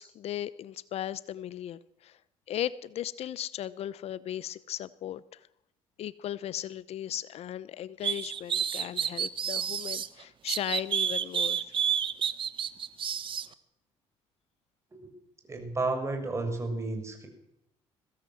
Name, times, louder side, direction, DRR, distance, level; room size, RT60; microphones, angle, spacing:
voice 1, 0.0-2.2 2.5-5.5 6.0-11.6, left 11 dB, 65° left, 18 dB, 0.8 m, -37 dB
sound 1, 8.0-10.1 10.5-13.5, right 8 dB, 45° right, 1.4 m, -30 dB
voice 2, 15.5-17.3, right 3 dB, 25° right, 5 dB, 7.2 m, -32 dB
22.0 x 16.5 x 7.8 m, 0.80 s
supercardioid pair, 85°, 12 cm